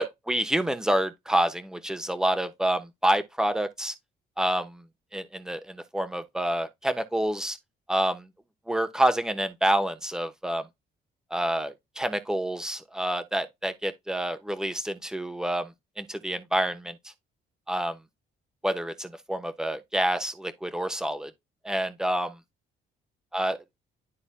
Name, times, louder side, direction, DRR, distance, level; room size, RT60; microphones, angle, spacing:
voice 1, 0.0-3.9 4.4-4.8 5.1-7.6 7.9-8.3 8.7-10.6 11.3-15.7 16.0-17.0 17.7-18.0 18.6-21.3 21.6-22.3 23.3-23.6, right 1 dB, 5° right, 1.1 m, -28 dB
11.5 x 3.9 x 2.2 m
cardioid pair, 90°, 20 cm